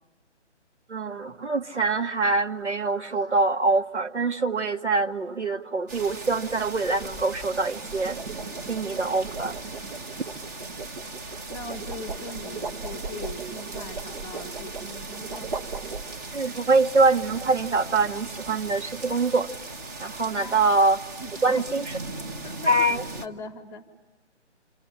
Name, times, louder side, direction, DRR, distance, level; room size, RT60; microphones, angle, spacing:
voice 1, 0.9-8.2 8.7-9.6 16.3-19.5 20.0-21.0 21.4-21.9 22.7-23.0, right 3 dB, 70° right, 6 dB, 1.7 m, -24 dB
sound 1, 2.1-2.5 7.6-16.5, right 4 dB, 45° right, 1.1 m, -38 dB
sound 2, 5.9-23.3, right 2 dB, 15° right, 1.0 m, -39 dB
voice 2, 11.5-15.5 20.3-20.7 21.2-21.6 22.4-23.8, left 2 dB, 10° left, 10 dB, 1.1 m, -40 dB
29.5 x 27.0 x 7.4 m, 1.1 s
figure-of-eight pair, 145°, 36 cm